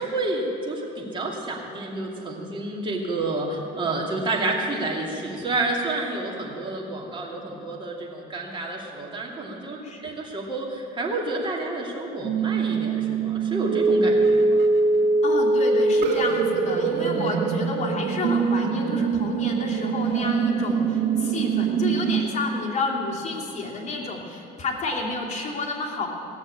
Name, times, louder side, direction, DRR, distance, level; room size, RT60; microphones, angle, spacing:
voice 1, 0.0-14.7, right 2 dB, 30° right, -1 dB, 2.7 m, -29 dB
voice 2, 9.8-10.1 15.2-26.1, left 3 dB, 40° left, -2 dB, 2.8 m, -30 dB
sound 1, 12.2-22.2, right 4 dB, 75° right, 1.5 m, -23 dB
17.5 x 7.1 x 8.8 m, 3.0 s
cardioid pair, 110°, 17 cm